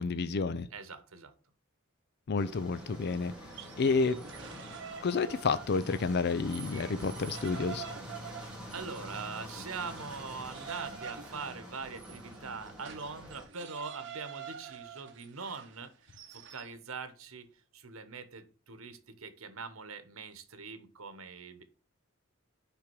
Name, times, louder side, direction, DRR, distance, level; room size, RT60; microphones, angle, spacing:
voice 1, 0.0-0.7 2.3-3.3 3.8-4.2 5.0-7.9, left 4 dB, 50° left, 0.5 m, -30 dB
voice 2, 0.7-1.3 8.4-21.6, right 5 dB, 85° right, 1.1 m, -43 dB
sound 1, 2.4-13.4, equal, 5° right, 2.3 m, -46 dB
sound 2, 3.4-6.1 6.5-16.7, right 7 dB, 60° right, 1.1 m, -47 dB
5.8 x 5.1 x 6.0 m
head